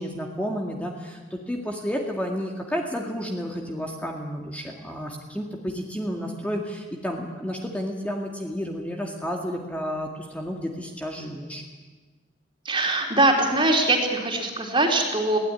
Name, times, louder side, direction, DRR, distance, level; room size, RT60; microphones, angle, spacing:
voice 1, 0.0-11.6, equal, 10° left, 0 dB, 2.1 m, -31 dB
voice 2, 12.7-15.4, right 2 dB, 30° right, 1 dB, 3.6 m, -22 dB
22.0 x 17.0 x 9.9 m, 1.3 s
head